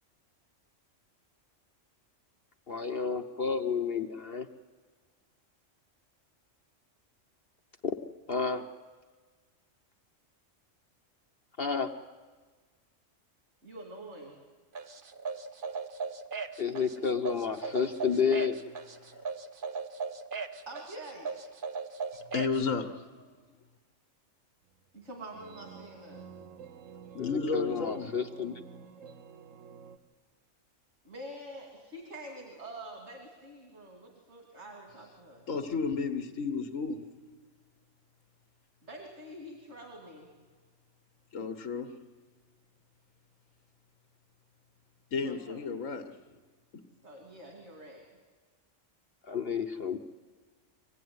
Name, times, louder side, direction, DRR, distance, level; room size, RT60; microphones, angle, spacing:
voice 1, 2.7-4.5 7.8-7.9 8.3-8.6 11.6-11.9 16.6-18.6 27.2-28.5 49.2-50.0, left 6 dB, 50° left, 5 dB, 1.0 m, -30 dB
voice 2, 13.6-14.3 20.7-21.5 24.9-26.3 31.0-35.4 38.8-40.3 45.2-45.7 47.0-48.1, right 1 dB, 60° right, 0 dB, 3.0 m, -46 dB
sound 1, 14.8-22.6, right 5 dB, 45° right, 1.1 m, -37 dB
voice 3, 22.3-23.4 27.1-28.1 35.5-37.0 41.3-41.9 45.1-46.0, left 4 dB, 80° left, 7 dB, 1.6 m, -32 dB
sound 2, 24.6-30.0, right 6 dB, 80° right, 1.4 m, -50 dB
24.0 x 16.0 x 9.5 m, 1.4 s
omnidirectional pair, 1.3 m